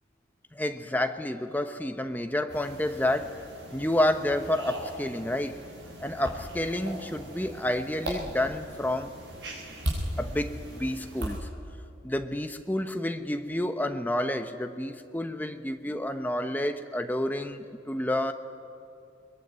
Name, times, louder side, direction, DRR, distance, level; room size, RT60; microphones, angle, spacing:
voice 1, 0.5-3.3 3.7-5.6 6.0-9.1 10.2-11.5 12.0-18.3, left 1 dB, 10° left, 7 dB, 0.9 m, -29 dB
sound 1, 2.5-11.4, right 1 dB, 70° right, 6.9 m, -38 dB
23.0 x 21.5 x 9.5 m, 2.6 s
head